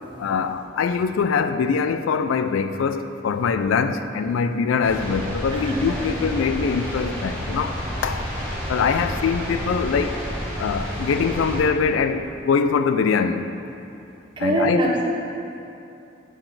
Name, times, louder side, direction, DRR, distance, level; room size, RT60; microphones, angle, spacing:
voice 1, 0.2-7.8 8.0-8.3 8.7-10.2 10.6-13.5 14.4-14.9, left 5 dB, 85° left, 10 dB, 0.3 m, -23 dB
sound 1, 4.8-11.6, equal, 5° left, 1.5 m, -30 dB
voice 2, 5.5-5.8 14.4-15.0, right 1 dB, 25° right, -2 dB, 0.7 m, -22 dB
6.9 x 3.9 x 5.9 m, 2.6 s
head